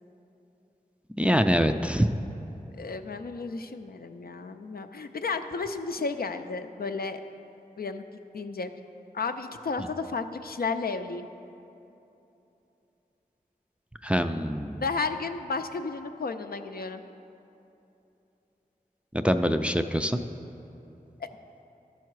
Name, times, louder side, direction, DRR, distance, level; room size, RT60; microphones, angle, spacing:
voice 1, 1.2-2.1 14.0-14.8 19.1-20.2, equal, 5° right, 7 dB, 0.3 m, -24 dB
voice 2, 2.8-7.2 7.8-8.0 8.3-8.7 9.1-11.3 14.8-17.0 21.2-21.3, left 4 dB, 70° left, 7 dB, 0.4 m, -33 dB
12.0 x 5.7 x 4.6 m, 2.9 s
wide cardioid pair, 65°, 16 cm